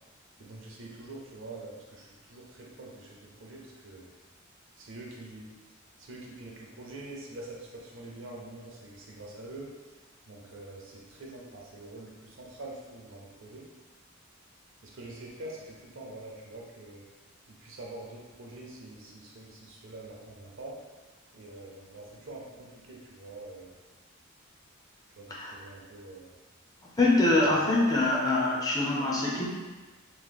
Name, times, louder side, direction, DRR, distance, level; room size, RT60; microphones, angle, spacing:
voice 1, 0.4-4.1 4.8-5.5 6.0-9.7 10.3-13.7 14.8-17.0 17.6-20.8 21.3-23.9 25.2-26.4 27.3-27.8, right 2 dB, 65° right, -2 dB, 0.6 m, -45 dB
voice 2, 27.0-29.5, left 2 dB, 20° left, -4 dB, 0.5 m, -24 dB
3.0 x 2.0 x 3.4 m, 1.3 s
head